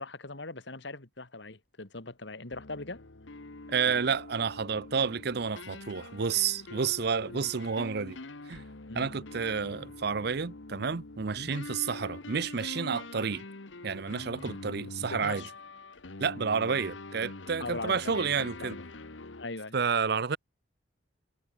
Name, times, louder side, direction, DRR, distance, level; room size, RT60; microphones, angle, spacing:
voice 1, 0.0-3.0 7.3-7.5 8.9-9.1 11.4-11.5 15.0-15.5 17.6-18.9 19.4-19.8, left 2 dB, 70° left, 2.4 m, -40 dB
sound 1, 1.1-1.3 1.7-2.2 3.7-8.5 10.2-10.3 10.7-11.6 15.4-17.1, left 1 dB, 45° left, 6.8 m, -61 dB
sound 2, 2.5-19.4, left 2 dB, 90° left, 1.5 m, -44 dB
voice 2, 3.7-8.2 8.5-8.6 8.9-13.4 13.8-15.4 16.2-18.8 19.7-20.4, right 6 dB, 60° right, 0.7 m, -30 dB
head